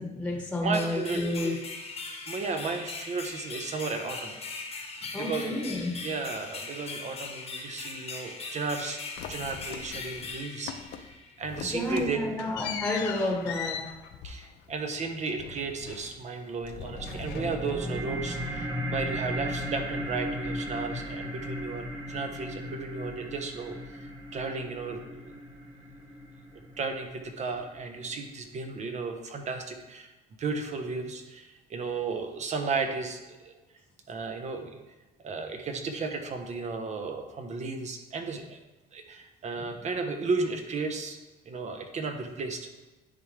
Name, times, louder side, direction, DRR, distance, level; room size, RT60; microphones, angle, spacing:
voice 1, 0.0-1.6 5.1-5.9 11.6-13.9 39.6-39.7, left 1 dB, 10° left, 0 dB, 1.2 m, -30 dB
voice 2, 0.6-1.2 2.3-4.7 5.2-5.6 6.0-9.0 9.3-12.2 14.2-25.3 26.8-30.1 30.4-33.5 34.1-34.8 35.2-38.6 38.9-41.2 41.5-42.7, right 4 dB, 45° right, 5 dB, 1.0 m, -34 dB
sound 1, 0.7-11.4, left 4 dB, 35° left, 1.1 m, -40 dB
sound 2, 9.2-10.4 10.7-11.1 11.4-16.4 16.7-18.0, left 8 dB, 85° left, 0.6 m, -40 dB
sound 3, 16.6-27.6, equal, 25° right, 1.3 m, -36 dB
10.0 x 3.6 x 3.3 m, 1.1 s
cardioid pair, 110°, 17 cm